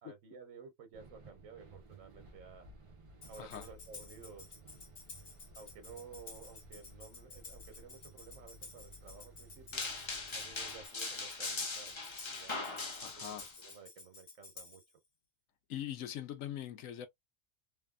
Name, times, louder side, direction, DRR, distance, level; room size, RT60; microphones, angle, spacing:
voice 1, 0.0-2.7 3.3-4.5 5.5-9.9 10.3-14.8 16.8-16.9, right 5 dB, 75° right, 1.4 m, -54 dB
sound 1, 0.9-10.9, right 2 dB, 40° right, 0.5 m, -57 dB
Tambourine, 3.2-14.9, left 3 dB, 50° left, 1.2 m, -53 dB
sound 2, 9.7-13.7, left 3 dB, 35° left, 0.5 m, -40 dB
voice 2, 13.0-13.5 15.7-17.1, left 11 dB, 85° left, 1.1 m, -42 dB
3.3 x 2.1 x 2.3 m
omnidirectional pair, 1.3 m